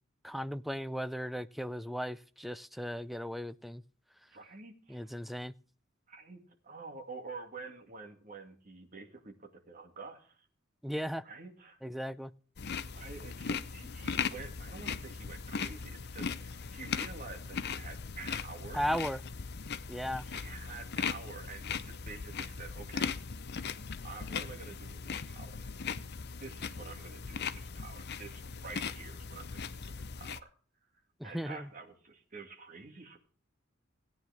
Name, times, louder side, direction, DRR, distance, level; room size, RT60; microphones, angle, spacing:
voice 1, 0.2-3.8 4.9-5.5 10.8-11.2 11.8-12.3 18.7-19.2 19.9-20.3 31.2-31.7, equal, ahead, 14 dB, 0.5 m, -36 dB
voice 2, 4.3-5.1 6.1-10.5 11.2-11.8 12.9-18.8 20.2-23.1 24.0-25.7 26.4-30.5 31.2-33.2, right 4 dB, 40° right, 2 dB, 2.4 m, -48 dB
sound 1, 12.6-30.4, left 6 dB, 55° left, 0.7 m, -39 dB
17.0 x 9.6 x 3.5 m, 0.42 s
head